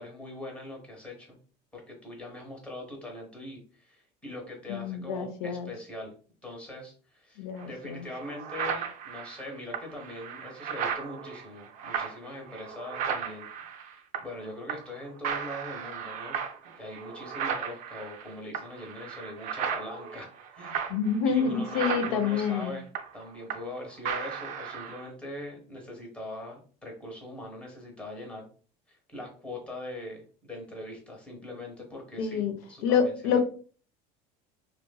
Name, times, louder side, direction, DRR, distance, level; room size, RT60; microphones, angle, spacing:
voice 1, 0.0-1.4 1.7-6.1 6.4-13.5 13.9-16.4 16.8-20.9 21.3-22.9 23.1-28.5 28.9-33.4, left 1 dB, 5° left, 0 dB, 0.8 m, -42 dB
voice 2, 4.7-5.7 7.4-8.1 20.9-22.8 32.2-32.5 32.8-33.4, left 6 dB, 90° left, 8 dB, 0.6 m, -27 dB
sound 1, 7.6-7.7 8.1-14.4 14.7-15.0 15.2-23.8 24.0-25.1, right 7 dB, 45° right, 0.4 m, -35 dB
2.9 x 2.5 x 2.2 m, 0.40 s
cardioid pair, 145°, 18 cm